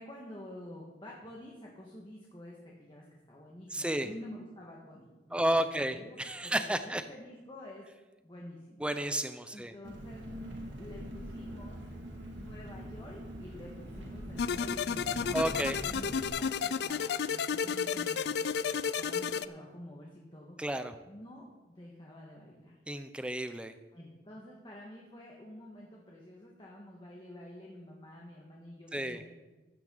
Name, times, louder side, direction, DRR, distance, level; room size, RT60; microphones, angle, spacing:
voice 1, 0.0-7.8 8.2-8.8 9.5-10.3 10.8-11.8 12.4-15.5 15.8-16.1 16.4-20.6 21.1-22.7 23.9-29.3, left 1 dB, 25° left, -2 dB, 1.7 m, -49 dB
voice 2, 3.7-4.1 5.3-7.0 8.8-9.7 15.3-15.8 20.6-21.0 22.9-23.7 28.9-29.2, right 1 dB, 5° right, 10 dB, 0.6 m, -32 dB
Engine, 9.8-16.3, equal, 85° right, 2.5 m, -43 dB
sound 1, 14.4-19.5, left 6 dB, 60° left, 0.4 m, -32 dB
15.0 x 9.3 x 4.0 m, 1.2 s
head